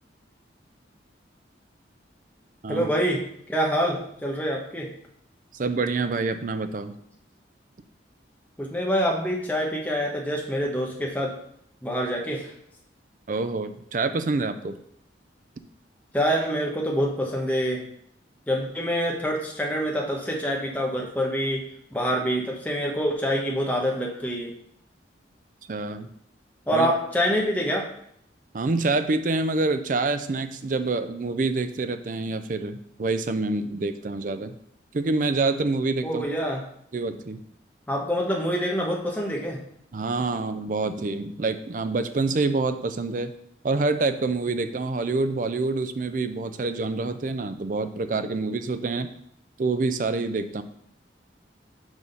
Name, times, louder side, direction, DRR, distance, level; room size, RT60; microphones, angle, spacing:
voice 1, 2.7-3.2 3.5-4.9 8.6-11.3 11.8-12.5 16.1-17.8 18.5-24.5 26.7-27.9 36.0-36.6 37.9-39.6, equal, 10° left, -1 dB, 1.0 m, -26 dB
voice 2, 5.5-6.9 13.3-14.8 25.7-26.1 26.7-26.9 28.5-34.6 34.9-36.3 36.9-37.4 39.9-43.3 43.6-49.1 49.6-50.6, right 3 dB, 45° right, 10 dB, 0.4 m, -26 dB
6.2 x 3.6 x 5.4 m, 0.71 s
head